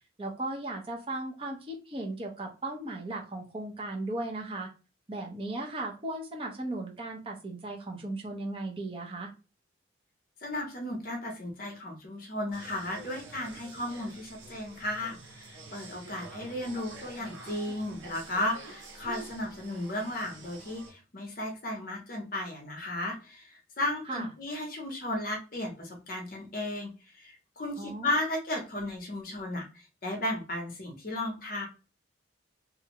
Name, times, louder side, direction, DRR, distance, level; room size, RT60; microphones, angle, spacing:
voice 1, 0.2-4.7 5.1-9.3 24.1-24.3 27.8-28.1, right 2 dB, 30° right, 0 dB, 0.6 m, -36 dB
voice 2, 10.4-31.7, left 1 dB, 50° left, 1 dB, 0.7 m, -35 dB
sound 1, 12.5-20.9, right 3 dB, 80° right, 0.7 m, -47 dB
2.5 x 2.1 x 2.9 m, 0.32 s
head